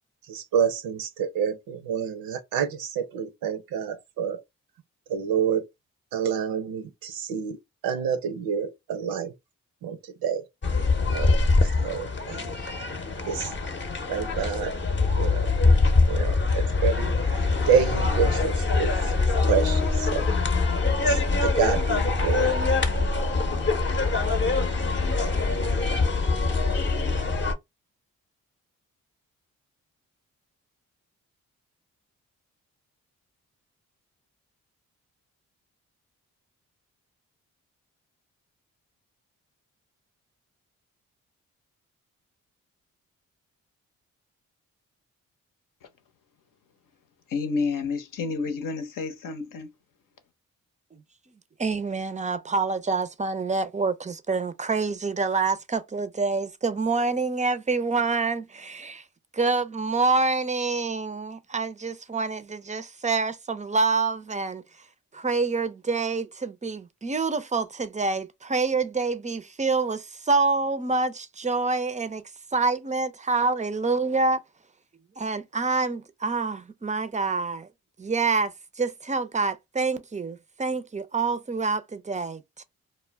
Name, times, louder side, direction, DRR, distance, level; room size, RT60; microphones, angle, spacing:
voice 1, 0.3-4.4 5.1-5.6 6.1-7.6 7.8-9.3 9.8-10.5 11.1-12.5 13.3-13.5 14.1-14.7 15.2-15.5 16.1-19.1 19.4-20.3 21.0-22.5, right 7 dB, 85° right, 0.6 m, -28 dB
sound 1, 10.6-27.5, left 3 dB, 35° left, 0.7 m, -24 dB
voice 2, 47.3-49.7, left 4 dB, 65° left, 0.7 m, -29 dB
voice 3, 51.6-59.0 59.3-64.6 65.1-72.2 72.5-74.4 75.2-77.7 78.0-82.6, right 4 dB, 20° right, 0.4 m, -27 dB
2.2 x 2.1 x 3.3 m
supercardioid pair, 50°, 34 cm